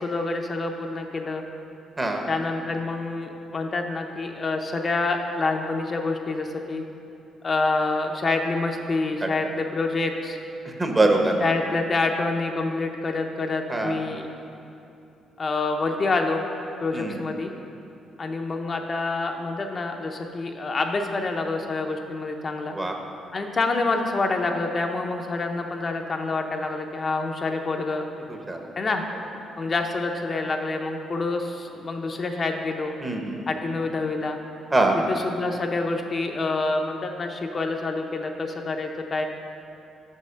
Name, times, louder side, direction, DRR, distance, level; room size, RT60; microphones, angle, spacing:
voice 1, 0.0-1.4 2.3-6.8 7.4-10.4 11.4-14.3 15.4-16.4 16.8-17.5 18.2-22.8 23.3-28.1 28.8-29.0 29.6-32.9 33.5-34.4 35.1-39.3, left 3 dB, 40° left, 3 dB, 0.6 m, -27 dB
voice 2, 10.8-11.3 13.7-14.0 16.9-17.2 22.7-22.9 28.3-28.7 33.0-33.4 34.7-35.0, right 2 dB, 20° right, 3 dB, 0.9 m, -23 dB
6.0 x 5.5 x 6.3 m, 2.8 s
cardioid pair, 85°, 0 cm